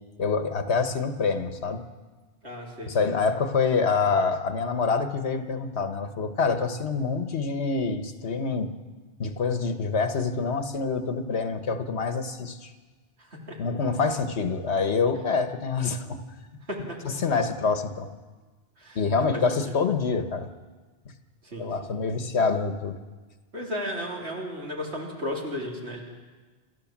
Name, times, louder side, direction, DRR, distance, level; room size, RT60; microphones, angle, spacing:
voice 1, 0.2-1.8 2.8-8.7 9.2-12.7 13.6-16.2 17.0-18.1 18.9-20.5 21.6-23.0, left 4 dB, 80° left, 8 dB, 1.5 m, -26 dB
voice 2, 2.4-3.1 13.2-13.6 16.7-17.0 18.8-19.0 19.6-19.7 21.4-21.9 23.5-26.0, left 1 dB, 80° right, -1 dB, 3.5 m, -34 dB
27.0 x 13.5 x 7.3 m, 1.3 s
omnidirectional pair, 1.1 m